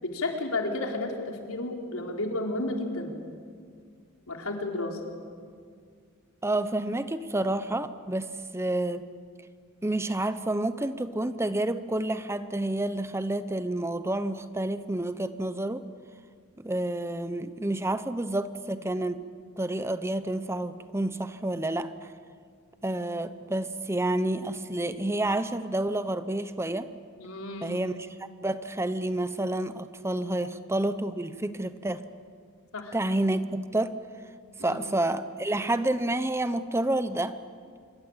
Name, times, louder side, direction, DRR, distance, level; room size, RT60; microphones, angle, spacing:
voice 1, 0.0-3.1 4.3-5.0 27.2-27.9 30.4-30.5 32.7-33.0 34.6-34.8, left 2 dB, 90° left, 2 dB, 4.1 m, -32 dB
voice 2, 6.4-9.0 9.8-15.8 16.6-19.2 19.6-21.9 22.8-26.9 27.6-28.0 28.4-32.0 32.9-33.9 34.6-37.4, right 1 dB, 10° right, 12 dB, 0.8 m, -29 dB
26.5 x 23.5 x 8.9 m, 2.1 s
head